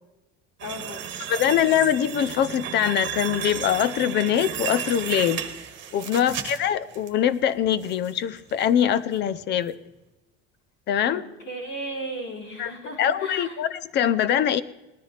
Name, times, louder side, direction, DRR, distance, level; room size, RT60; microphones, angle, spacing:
voice 1, 0.6-1.2 6.2-6.5 11.1-13.6, right 1 dB, 75° left, -6 dB, 5.3 m, -36 dB
sound 1, 0.6-7.1 7.5-8.1 8.5-8.7 9.1-9.2, right 9 dB, 35° right, 1.6 m, -33 dB
voice 2, 1.3-5.4 5.9-9.8 10.9-11.2 12.6-12.7 13.0-14.6, left 10 dB, 35° left, 16 dB, 0.5 m, -23 dB
19.0 x 13.0 x 3.3 m, 1.0 s
cardioid pair, 165°, 31 cm